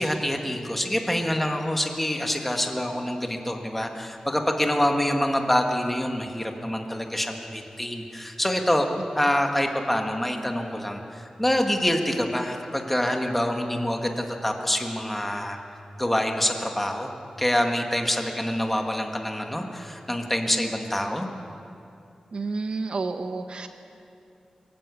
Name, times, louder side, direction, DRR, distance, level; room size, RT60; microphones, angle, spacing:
voice 1, 0.0-8.9 9.2-15.6 16.0-17.1 17.4-21.3, left 1 dB, 10° left, 3 dB, 1.8 m, -26 dB
voice 2, 22.3-23.7, right 3 dB, 55° right, 7 dB, 1.0 m, -30 dB
24.0 x 14.5 x 8.4 m, 2.6 s
wide cardioid pair, 140°, 2 cm